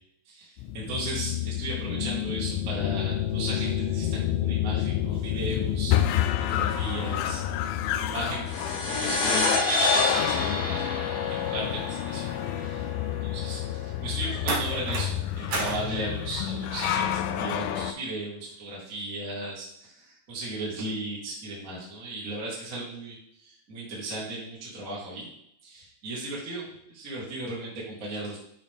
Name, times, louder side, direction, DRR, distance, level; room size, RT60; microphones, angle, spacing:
voice 1, 0.2-8.5 8.9-11.2 11.5-12.3 12.6-12.8 13.3-25.3 25.6-28.4, right 2 dB, 35° right, -6 dB, 1.5 m, -36 dB
sound 1, 0.6-17.9, left 11 dB, 85° left, 2.3 m, -29 dB
sound 2, 8.5-13.4, left 1 dB, 30° left, 0.8 m, -30 dB
sound 3, 12.0-12.3 14.5-15.1 15.5-15.9 16.8-17.0, right 3 dB, 75° right, 1.2 m, -31 dB
11.0 x 4.1 x 3.5 m, 0.73 s
omnidirectional pair, 4.3 m